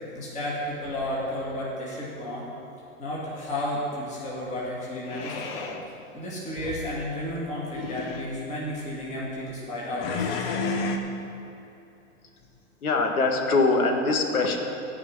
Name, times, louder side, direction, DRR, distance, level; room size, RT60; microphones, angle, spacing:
voice 1, 0.1-2.4 3.0-5.7 6.1-10.7, left 1 dB, 15° left, -6 dB, 2.4 m, -32 dB
sound 1, 0.8-1.7 5.1-5.8 6.5-7.0 7.6-8.3 9.9-11.0, left 4 dB, 40° left, 1.0 m, -32 dB
voice 2, 12.8-14.6, left 3 dB, 80° left, 3 dB, 1.9 m, -22 dB
14.5 x 5.1 x 8.5 m, 2.8 s
hypercardioid pair, 145°, 43 cm